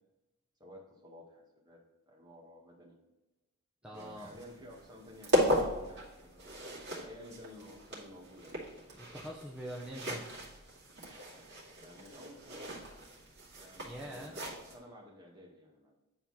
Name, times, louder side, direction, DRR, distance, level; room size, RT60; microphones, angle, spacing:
voice 1, 0.6-1.8 2.1-3.0 3.8-8.6 11.8-12.7 13.6-15.9, left 1 dB, 20° right, -2 dB, 1.7 m, -53 dB
voice 2, 3.8-4.4 9.0-10.3 13.8-14.4, equal, 5° right, -3 dB, 0.7 m, -44 dB
sound 1, 3.9-14.8, left 1 dB, 55° right, 2.4 m, -37 dB
9.6 x 4.3 x 4.2 m, 1.0 s
head